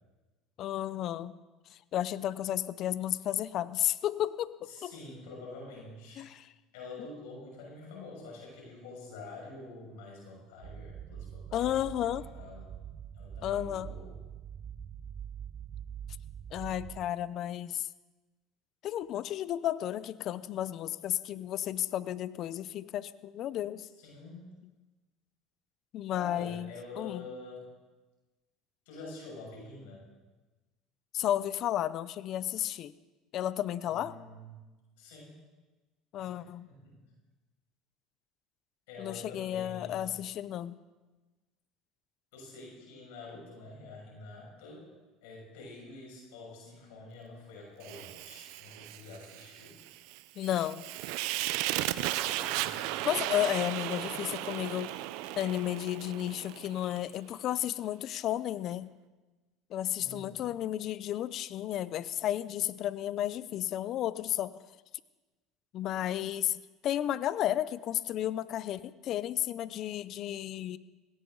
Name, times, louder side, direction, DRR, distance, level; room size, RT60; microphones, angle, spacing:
voice 1, 0.6-1.3 1.7-4.5 4.8-4.9 6.2-6.5 11.5-12.2 13.4-13.9 16.5-17.9 18.8-23.9 25.9-26.7 27.0-27.2 31.1-32.9 33.3-34.2 36.1-36.7 39.0-40.8 50.4-50.9 53.0-54.9 55.3-58.9 59.7-64.6 65.7-70.8, left 12 dB, 55° left, 16 dB, 0.6 m, -33 dB
voice 2, 4.7-6.2 6.7-11.7 12.3-12.7 13.1-14.1 24.0-24.6 26.1-27.7 28.8-30.0 33.9-34.5 35.0-35.4 36.2-36.3 36.7-37.0 38.9-40.2 42.3-44.9 45.2-49.8 52.2-53.1 54.0-54.5 60.0-60.4, left 3 dB, 85° left, -2 dB, 6.4 m, -47 dB
sound 1, 10.6-17.1, right 9 dB, 40° right, 0.5 m, -44 dB
Fire, 47.8-57.0, right 15 dB, 75° right, 0.7 m, -36 dB
19.0 x 17.5 x 4.0 m, 1.2 s
supercardioid pair, 105°, 0 cm